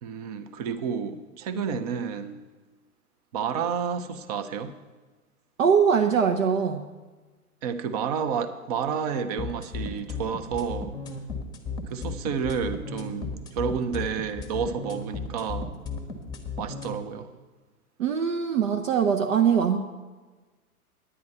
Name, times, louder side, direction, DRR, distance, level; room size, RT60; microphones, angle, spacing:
voice 1, 0.0-2.4 3.3-4.7 7.6-10.9 11.9-15.7 16.6-17.3, right 6 dB, 25° right, 11 dB, 0.6 m, -30 dB
voice 2, 5.6-6.8 18.0-19.8, right 7 dB, 60° right, 4 dB, 0.8 m, -22 dB
sound 1, 9.4-16.9, left 4 dB, 10° left, 1.0 m, -34 dB
9.8 x 9.4 x 5.4 m, 1.3 s
figure-of-eight pair, 115°, 45 cm